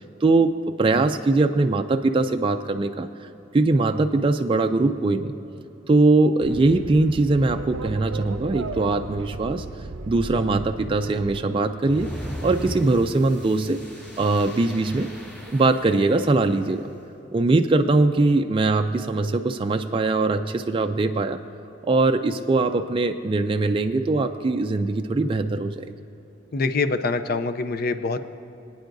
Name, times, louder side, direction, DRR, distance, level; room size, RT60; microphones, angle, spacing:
voice 1, 0.2-3.3 3.5-5.3 5.9-9.6 10.1-13.8 14.2-15.1 15.5-16.9 17.3-21.4 21.8-25.9, right 3 dB, 25° right, 6 dB, 0.3 m, -21 dB
sound 1, 6.4-11.4, right 3 dB, 75° right, 0.6 m, -36 dB
sound 2, 11.8-16.7, equal, 5° left, 2.6 m, -37 dB
voice 2, 26.5-28.2, left 3 dB, 50° left, 10 dB, 0.5 m, -24 dB
24.5 x 9.2 x 2.6 m, 2.8 s
head